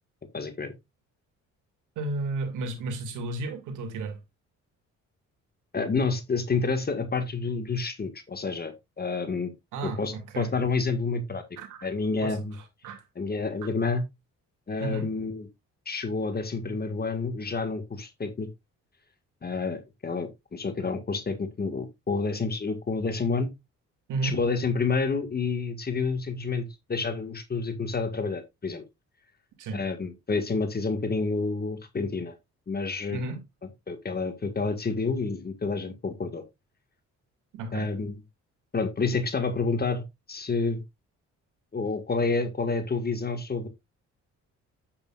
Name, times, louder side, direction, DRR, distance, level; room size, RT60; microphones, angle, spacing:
voice 1, 0.3-0.7 5.7-9.5 9.8-11.4 11.8-12.6 13.2-14.0 14.7-15.5 15.9-18.5 19.4-23.5 24.2-28.8 29.7-32.4 32.7-33.2 33.9-36.4 37.7-38.2 38.7-40.0 40.3-40.8 41.7-43.7, left 4 dB, 30° left, 1.8 m, -29 dB
voice 2, 2.0-4.2 9.7-10.6 11.6-11.9 12.2-13.0 14.8-15.1 24.1-24.4 29.6-29.8 33.1-33.4 37.5-37.9, right 2 dB, 85° right, 2.7 m, -33 dB
8.7 x 8.2 x 2.5 m
cardioid pair, 90°, 30 cm